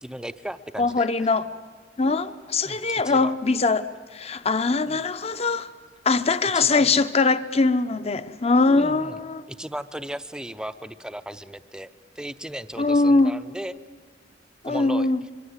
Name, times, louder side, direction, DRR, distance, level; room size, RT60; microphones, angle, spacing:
voice 1, 0.0-1.3 2.6-3.4 4.9-5.0 6.5-7.0 8.8-9.2 9.5-11.9 12.2-13.7 14.7-15.3, right 1 dB, 5° right, 11 dB, 0.6 m, -36 dB
voice 2, 0.8-1.4 2.0-5.7 6.0-9.4 12.8-13.3 14.6-15.2, left 3 dB, 35° left, 12 dB, 0.9 m, -22 dB
24.0 x 23.5 x 8.1 m, 1.6 s
head